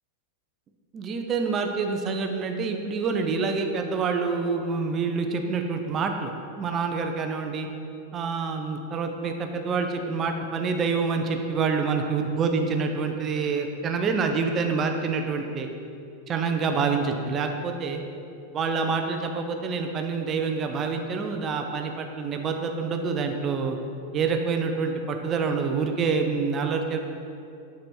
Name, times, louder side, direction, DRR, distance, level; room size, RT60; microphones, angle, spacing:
voice 1, 0.9-7.7 8.1-15.7 16.3-18.0 18.5-23.8 24.1-27.0, right 5 dB, 30° right, 5 dB, 0.6 m, -27 dB
6.0 x 4.2 x 4.6 m, 2.6 s
figure-of-eight pair, 90°, 0 cm